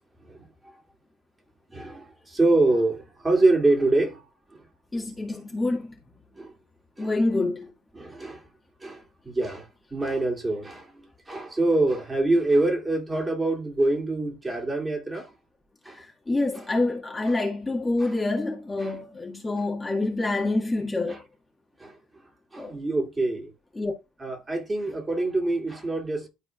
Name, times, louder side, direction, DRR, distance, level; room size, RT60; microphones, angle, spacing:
voice 1, 1.7-4.2 4.5-4.6 6.4-6.5 7.0-7.1 7.9-8.4 8.8-15.3 15.8-16.0 16.5-16.6 17.3-17.4 18.0-18.1 18.8-19.0 21.1-21.2 21.8-21.9 22.5-23.5 24.2-26.3, right 2 dB, 20° right, 2.7 m, -25 dB
voice 2, 4.9-5.9 7.0-7.7 15.9-21.2 22.6-22.8 23.8-23.9, left 2 dB, 20° left, 1.7 m, -27 dB
12.0 x 4.3 x 2.4 m
hypercardioid pair, 65°, 0 cm